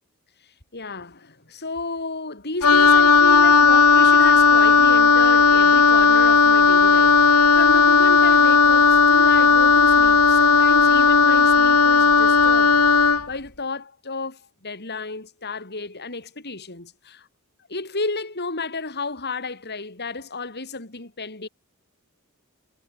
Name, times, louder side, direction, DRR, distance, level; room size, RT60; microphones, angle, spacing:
voice 1, 0.7-12.8 13.3-17.3 17.7-21.5, left 3 dB, 50° left, 4.8 m, -32 dB
Wind instrument woodwind instrument, 2.6-13.3, left 5 dB, 80° left, 4.1 m, -15 dB
head